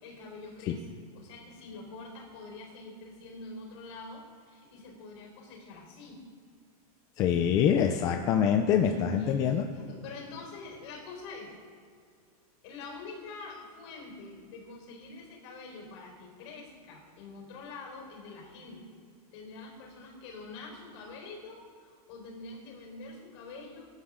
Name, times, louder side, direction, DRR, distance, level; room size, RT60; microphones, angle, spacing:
voice 1, 0.0-0.9 1.1-6.2 8.8-11.5 12.6-18.9 19.3-23.9, left 3 dB, 45° left, 0 dB, 4.3 m, -45 dB
voice 2, 7.2-9.6, left 8 dB, 20° left, 5 dB, 0.5 m, -25 dB
22.0 x 11.5 x 3.7 m, 2.2 s
supercardioid pair, 175°, 19 cm